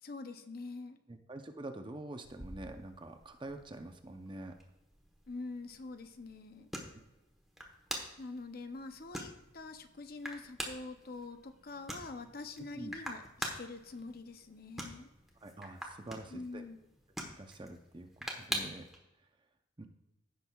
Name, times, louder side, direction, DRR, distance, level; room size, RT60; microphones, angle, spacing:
voice 1, 0.0-1.0 5.3-6.7 8.2-15.1 16.3-16.8, left 3 dB, 50° left, 8 dB, 0.6 m, -45 dB
voice 2, 1.1-4.5 12.8-12.9 15.4-16.6 17.4-18.1 18.5-18.9 19.8-19.9, right 2 dB, 25° right, 6 dB, 0.6 m, -46 dB
sound 1, 2.2-19.0, equal, ahead, 1.1 m, -46 dB
15.5 x 6.2 x 2.3 m, 0.97 s
head